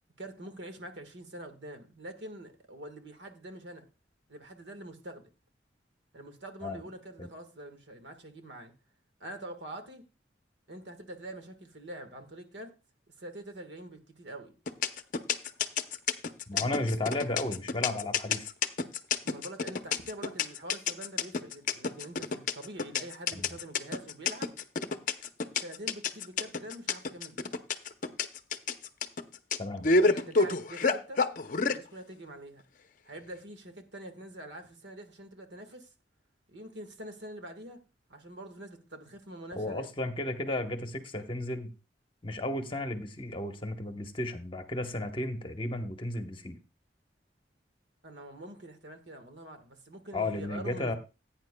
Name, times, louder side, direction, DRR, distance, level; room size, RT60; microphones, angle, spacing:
voice 1, 0.2-3.9 4.3-5.3 6.1-8.7 9.2-10.1 10.7-12.8 13.2-14.6 16.5-17.4 19.2-24.5 25.6-27.5 29.9-31.2 31.7-32.6 33.0-35.9 36.5-37.8 38.1-39.9 48.0-50.9, right 1 dB, 80° right, 1.5 m, -45 dB
sound 1, 14.7-31.8, left 4 dB, 45° left, 0.6 m, -28 dB
voice 2, 16.5-18.5 23.3-23.5 29.6-30.0 39.6-41.7 42.2-46.6 50.1-50.9, left 1 dB, 30° left, 1.0 m, -34 dB
16.0 x 8.9 x 2.2 m
head